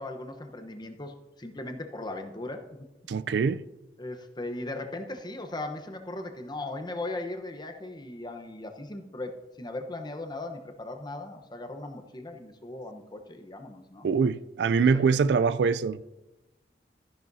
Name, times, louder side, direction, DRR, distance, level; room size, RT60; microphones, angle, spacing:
voice 1, 0.0-2.6 4.0-14.1 14.9-15.1, left 2 dB, 25° left, 0.9 m, -38 dB
voice 2, 3.1-3.6 14.0-16.0, right 5 dB, 70° right, 0.3 m, -24 dB
14.0 x 10.5 x 2.7 m
head